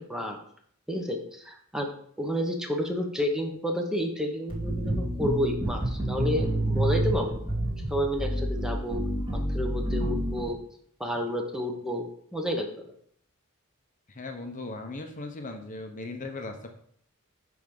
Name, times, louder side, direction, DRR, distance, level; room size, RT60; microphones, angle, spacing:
voice 1, 0.9-1.9 2.2-7.4 7.9-9.0 9.3-10.6 11.0-12.1 12.3-12.9, equal, 5° right, 2 dB, 1.0 m, -30 dB
sound 1, 4.5-10.5, right 1 dB, 25° right, 2.3 m, -28 dB
voice 2, 14.1-16.7, left 2 dB, 35° left, 4 dB, 0.8 m, -38 dB
10.0 x 3.5 x 5.4 m, 0.64 s
head